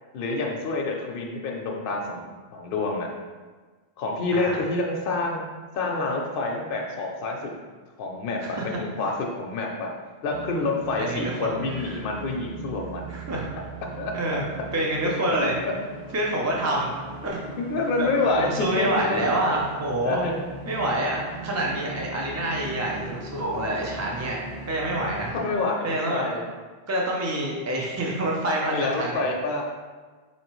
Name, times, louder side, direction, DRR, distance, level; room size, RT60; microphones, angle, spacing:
voice 1, 0.1-3.1 4.0-5.4 5.7-7.5 8.0-9.9 10.2-13.1 14.0-14.1 15.6-15.7 17.6-19.6 20.0-20.4 25.3-26.4 28.7-29.6, left 3 dB, 65° left, 0 dB, 0.7 m, -28 dB
voice 2, 8.4-8.8 11.0-12.0 13.1-13.5 14.1-14.4 14.7-15.6 16.1-16.9 17.2-17.5 18.0-20.2 20.7-24.4 24.7-25.3 25.8-26.2 26.9-29.2, right 1 dB, 25° right, -3 dB, 0.3 m, -27 dB
sound 1, 10.3-25.3, right 3 dB, 85° right, 0.9 m, -40 dB
4.3 x 2.8 x 3.0 m, 1.4 s
omnidirectional pair, 1.0 m